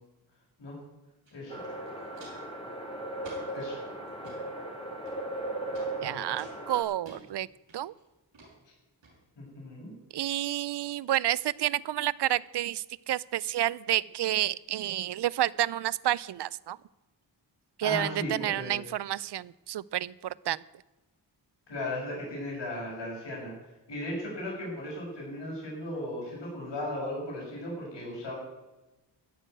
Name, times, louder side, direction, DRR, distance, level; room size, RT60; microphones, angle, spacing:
Walk footsteps, 1.2-1.3 1.6-2.5 3.2-3.6 4.1-4.4 5.0-5.4 5.7-5.9 6.4-7.2 7.7-8.0 8.3-8.5 9.0-9.1, right 2 dB, 85° right, 6.1 m, -51 dB
voice 1, 1.3-1.6 3.5-3.8 9.4-9.9 17.8-18.8 21.7-23.5 23.9-28.4, left 1 dB, 75° left, -4 dB, 6.5 m, -36 dB
sound 1, 1.5-6.8, right 1 dB, 10° left, 3.6 m, -37 dB
voice 2, 6.0-7.5 7.7-7.9 10.1-16.8 17.8-20.6, right 13 dB, 70° right, 22 dB, 0.6 m, -30 dB
15.5 x 6.6 x 9.2 m, 1.1 s
cardioid pair, 45°, 43 cm